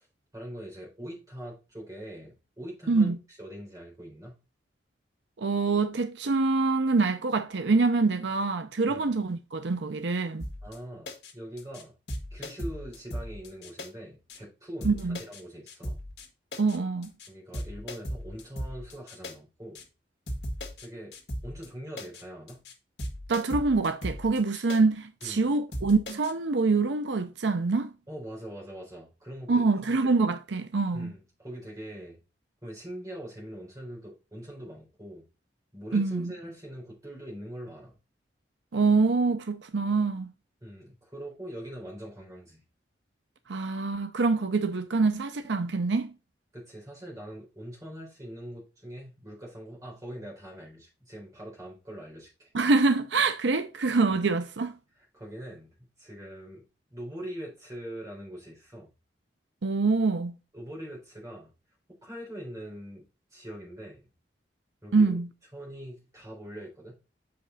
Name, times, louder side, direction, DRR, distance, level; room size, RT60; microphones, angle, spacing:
voice 1, 0.3-3.1 3.4-4.4 8.9-9.2 10.6-11.9 12.3-16.0 17.3-19.9 20.8-21.1 21.4-22.7 25.2-25.5 28.1-29.7 30.9-32.2 32.6-35.2 35.7-38.0 40.6-42.6 46.5-52.5 55.1-56.6 56.9-58.9 60.5-61.5 61.9-63.0 63.3-64.1 64.8-65.2 65.5-66.9, equal, 20° right, 4.0 m, -42 dB
voice 2, 2.9-3.2 5.4-10.5 14.8-15.2 16.6-17.1 23.3-27.9 29.5-31.1 35.9-36.3 38.7-40.3 43.5-46.1 52.5-54.8 59.6-60.3 64.9-65.3, right 3 dB, 80° right, 0.6 m, -25 dB
sound 1, 10.4-10.8 11.1-11.3 11.6-11.8 12.1-13.9 14.3-14.4 14.8-15.4 15.7-16.3 16.5-16.8 17.0-17.3 17.5-19.3 19.8-19.9 20.3-20.9 21.1-21.7 22.0-22.2 22.5-22.7 23.0-24.8 25.2-25.3 25.7-26.3, equal, 60° left, 1.8 m, -37 dB
6.7 x 5.3 x 4.0 m
head